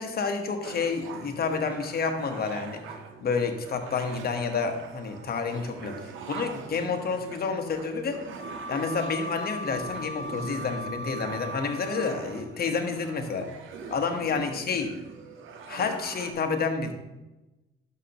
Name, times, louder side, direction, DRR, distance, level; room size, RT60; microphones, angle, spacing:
voice 1, 0.0-8.2 8.7-13.5 13.9-15.0 15.7-16.9, left 5 dB, 50° left, 5 dB, 1.2 m, -29 dB
sound 1, 0.6-16.3, right 5 dB, 80° right, 0.8 m, -43 dB
Wind instrument woodwind instrument, 8.4-12.4, equal, 35° left, 0.8 m, -38 dB
10.5 x 6.6 x 2.9 m, 1.1 s
cardioid pair, 90°, 20 cm